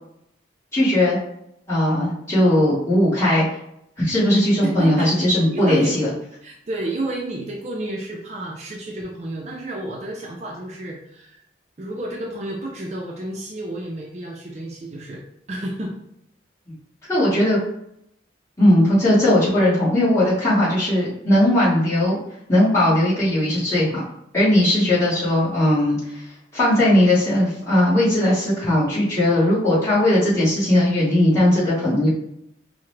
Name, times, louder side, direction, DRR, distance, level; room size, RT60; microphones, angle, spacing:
voice 1, 0.7-1.2 1.7-3.4 4.0-6.1 17.1-17.6 18.6-22.2 22.5-23.9 24.3-26.2 26.5-32.1, left 1 dB, 15° left, -10 dB, 1.4 m, -18 dB
voice 2, 4.6-6.0 6.4-11.4 11.8-15.2 15.5-16.0, right 1 dB, 35° right, -2 dB, 0.4 m, -31 dB
4.7 x 2.1 x 3.2 m, 0.76 s
head